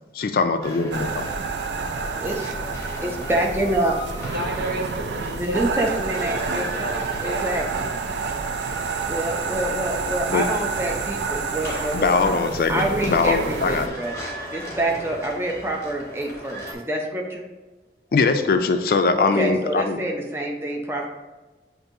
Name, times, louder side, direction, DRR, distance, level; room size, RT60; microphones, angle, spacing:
voice 1, 0.1-1.3 10.3-10.4 11.9-13.9 18.1-20.0, left 4 dB, 55° left, 8 dB, 0.3 m, -21 dB
sound 1, 0.6-16.7, equal, 15° left, 0.9 m, -38 dB
sound 2, 0.9-13.9, right 4 dB, 80° right, 0.4 m, -29 dB
voice 2, 2.2-2.5 3.0-4.2 5.3-6.9 7.2-7.9 9.1-12.4 12.7-14.1 14.5-17.4 19.2-21.1, right 1 dB, 15° right, 1 dB, 0.5 m, -26 dB
voice 3, 4.3-6.0 6.2-7.5, right 1 dB, 65° right, 0 dB, 0.9 m, -32 dB
7.5 x 2.6 x 2.7 m, 1.2 s
head